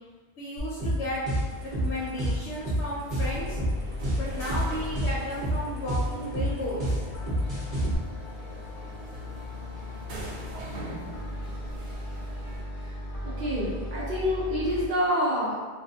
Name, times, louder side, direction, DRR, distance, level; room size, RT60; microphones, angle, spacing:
voice 1, 0.4-1.2 1.6-3.6 4.2-7.0, left 1 dB, 80° left, -8 dB, 0.9 m, -34 dB
sound 1, 0.6-8.0, right 1 dB, 35° right, 0.8 m, -28 dB
sound 2, 1.4-12.6, right 2 dB, 80° right, 0.9 m, -43 dB
sound 3, 3.2-14.9, left 1 dB, 60° left, 0.5 m, -38 dB
voice 2, 13.4-15.6, equal, 20° right, -8 dB, 0.4 m, -27 dB
2.4 x 2.2 x 2.7 m, 1.4 s
omnidirectional pair, 1.1 m